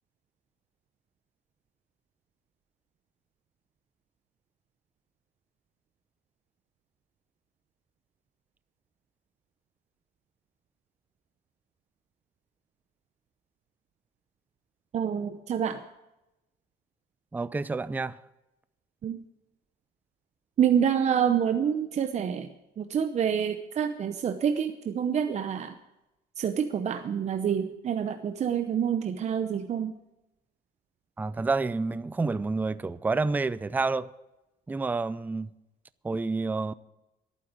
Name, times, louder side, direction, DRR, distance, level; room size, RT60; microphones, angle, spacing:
voice 1, 14.9-15.8 19.0-19.2 20.6-25.7 26.4-29.9, right 8 dB, 40° right, 0.8 m, -27 dB
voice 2, 17.3-18.2 31.2-34.1 34.7-35.5 36.0-36.8, right 3 dB, 10° right, 0.4 m, -29 dB
11.5 x 9.4 x 8.7 m
cardioid pair, 110°, 17 cm